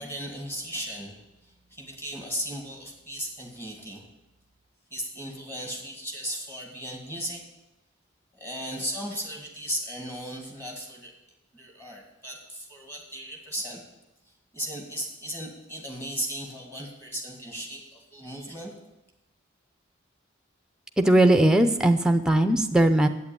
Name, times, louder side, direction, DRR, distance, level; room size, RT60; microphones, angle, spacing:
voice 1, 0.0-4.0 4.9-7.5 8.3-11.1 11.5-13.8 14.5-18.7, equal, 10° left, 0 dB, 2.0 m, -36 dB
voice 2, 21.0-23.1, right 1 dB, 5° right, 7 dB, 0.6 m, -19 dB
8.5 x 8.2 x 8.9 m, 0.94 s
head